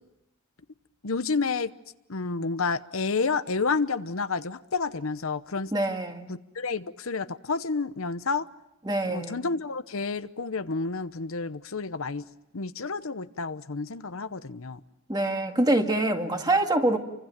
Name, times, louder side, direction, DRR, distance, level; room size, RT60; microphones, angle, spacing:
voice 1, 1.0-1.7 2.1-5.7 6.3-8.5 9.1-12.3 12.5-14.8, left 4 dB, 70° left, 0.9 m, -30 dB
voice 2, 5.7-6.3 8.9-9.5 15.1-17.0, right 1 dB, 20° right, 2.0 m, -25 dB
30.0 x 25.0 x 7.4 m
head